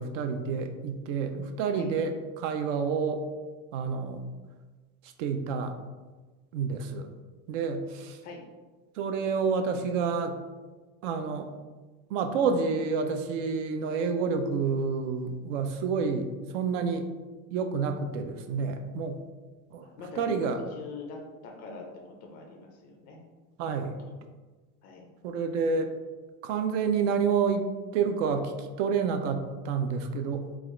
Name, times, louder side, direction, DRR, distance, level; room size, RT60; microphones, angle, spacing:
voice 1, 0.0-3.2 3.7-4.2 5.2-5.8 6.5-7.1 7.5-8.2 9.0-10.4 11.0-11.5 12.1-17.1 17.5-19.2 19.7-19.9 20.2-20.6 23.6-24.0 25.2-25.9 26.4-28.5 28.8-30.5, right 5 dB, 60° right, 7 dB, 0.5 m, -29 dB
voice 2, 19.8-23.2 23.6-23.7 24.0-24.1 24.8-25.1, left 4 dB, 25° left, 1 dB, 0.4 m, -43 dB
4.0 x 2.3 x 3.6 m, 1.3 s
supercardioid pair, 160°, 43 cm